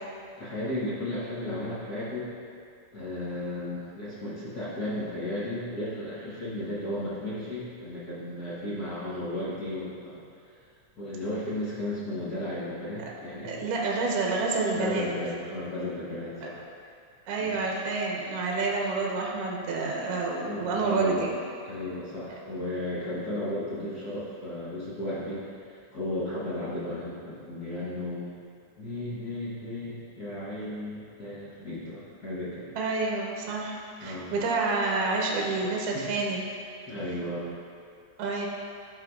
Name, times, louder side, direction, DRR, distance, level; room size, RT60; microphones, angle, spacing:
voice 1, 0.4-2.3 2.9-10.2 10.5-10.7 11.0-13.5 14.7-16.6 17.4-17.6 20.4-21.3 21.6-28.3 28.8-32.7 34.0-34.3 35.9-36.1 36.9-37.5, left 1 dB, 50° left, -10 dB, 1.2 m, -34 dB
voice 2, 13.4-15.1 16.4-16.5 17.3-21.3 32.7-36.4 38.2-38.5, right 3 dB, 65° right, -2 dB, 1.6 m, -28 dB
13.0 x 4.6 x 2.3 m, 2.4 s
omnidirectional pair, 3.5 m